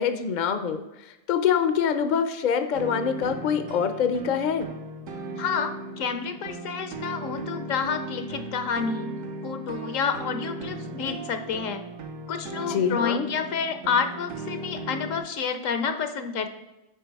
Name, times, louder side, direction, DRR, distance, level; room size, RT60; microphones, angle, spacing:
voice 1, 0.0-4.7 12.7-13.3, left 7 dB, 50° left, 9 dB, 0.6 m, -25 dB
sound 1, 2.7-15.2, right 2 dB, 75° right, 1.3 m, -37 dB
voice 2, 5.4-5.7 6.0-9.2 9.4-11.8 12.3-16.5, left 6 dB, 75° left, 8 dB, 1.1 m, -29 dB
9.3 x 4.7 x 4.6 m, 0.99 s
omnidirectional pair, 1.4 m